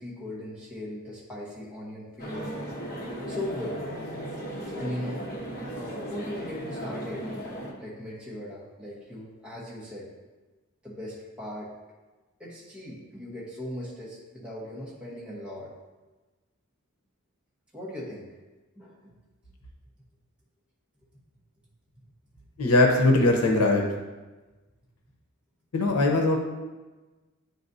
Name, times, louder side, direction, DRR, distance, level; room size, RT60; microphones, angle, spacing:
voice 1, 0.0-2.6 3.1-3.8 4.7-5.3 5.7-7.5 7.8-10.2 10.8-11.7 12.4-15.7 17.7-18.4 18.8-19.0, left 1 dB, 5° right, -7 dB, 1.1 m, -38 dB
sound 1, 2.2-7.7, equal, 45° left, 1.1 m, -36 dB
voice 2, 22.6-23.8 25.7-26.4, left 2 dB, 85° left, 2 dB, 0.8 m, -20 dB
9.4 x 4.0 x 2.7 m, 1.2 s
head